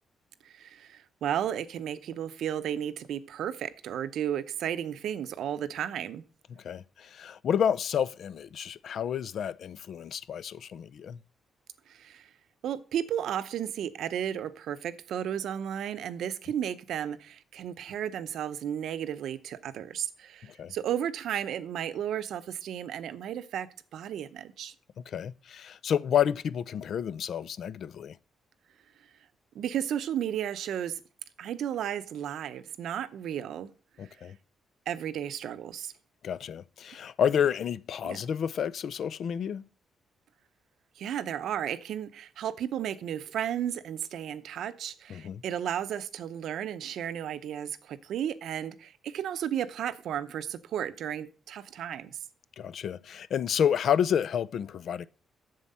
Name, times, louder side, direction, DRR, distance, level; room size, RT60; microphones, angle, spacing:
voice 1, 0.4-6.2 11.9-12.3 12.6-24.7 29.5-31.0 31.4-33.7 34.9-35.9 38.0-38.2 41.0-52.2, right 10 dB, 80° right, 0.7 m, -34 dB
voice 2, 6.5-11.2 20.4-20.7 25.0-28.2 34.0-34.4 36.2-39.6 45.1-45.4 52.6-55.1, left 8 dB, 65° left, 0.5 m, -30 dB
7.6 x 7.3 x 5.5 m
cardioid pair, 110°, 0 cm